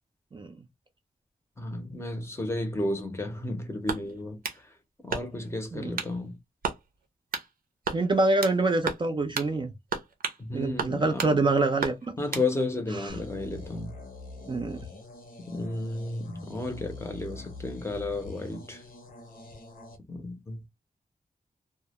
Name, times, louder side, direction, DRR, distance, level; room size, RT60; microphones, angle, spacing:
voice 1, 1.6-4.4 5.0-6.3 10.4-11.4 12.2-13.9 15.5-18.8 20.1-20.6, left 2 dB, 20° left, 0.5 m, -33 dB
sound 1, 3.8-4.6 5.1-5.5 6.0-6.2 6.6-6.8 7.3-7.5 7.8-8.6 8.9-9.1 9.3-9.5 9.9-10.4 10.8-11.3 11.8-12.5, right 5 dB, 85° right, 0.6 m, -33 dB
voice 2, 5.7-6.0 7.9-9.7 10.5-12.2 12.9-13.2 14.5-14.8, right 2 dB, 35° right, 0.4 m, -26 dB
sound 2, 13.1-20.0, left 3 dB, 75° left, 0.7 m, -44 dB
2.2 x 2.1 x 2.8 m
wide cardioid pair, 170°, 15 cm